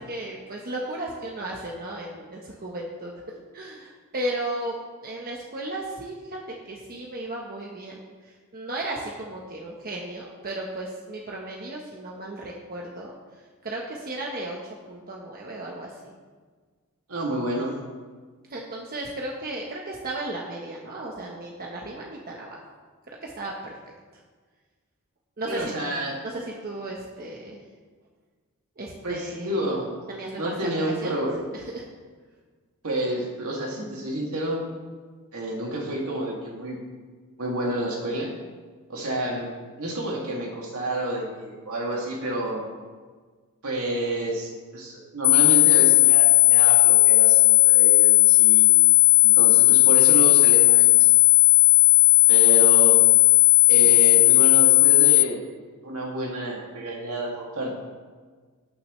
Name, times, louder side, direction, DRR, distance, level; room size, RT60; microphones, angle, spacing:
voice 1, 0.1-3.1 3.5-4.7 5.0-13.1 13.6-14.6 14.9-16.1 18.5-22.6 23.1-23.7 25.4-25.7 26.2-27.6 28.8-29.7 30.1-30.7 31.0-31.1 31.5-31.8, right 1 dB, 45° right, -2 dB, 1.1 m, -35 dB
voice 2, 17.1-17.8 25.5-26.2 29.0-29.9 30.4-31.4 32.8-34.7 35.3-36.8 37.4-38.3 38.9-39.5 39.8-42.6 43.6-48.7 49.2-51.1 52.3-53.0 53.7-55.4 55.8-57.7, right 1 dB, 70° right, -2 dB, 2.4 m, -29 dB
sound 1, 45.2-55.2, left 20 dB, 50° left, 0.3 m, -15 dB
18.5 x 6.4 x 3.2 m, 1.5 s
head